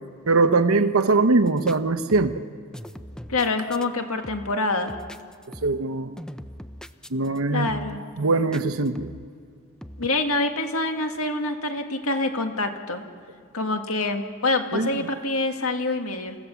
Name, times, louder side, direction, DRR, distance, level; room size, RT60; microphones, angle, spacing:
voice 1, 0.3-2.5 5.6-6.2 7.1-7.7 8.2-9.1 14.7-15.0, right 3 dB, 75° right, 11 dB, 0.9 m, -21 dB
sound 1, 1.5-1.8 2.1-2.5 2.7-3.9 4.2-4.6 4.9-5.9 6.2-7.4 7.7-8.1 8.5-9.3 9.8-10.1, equal, 5° left, 0.5 m, -41 dB
voice 2, 3.3-5.0 7.5-8.0 10.0-13.0 13.5-16.4, left 2 dB, 80° left, 5 dB, 1.9 m, -26 dB
28.5 x 16.0 x 7.1 m, 2.2 s
head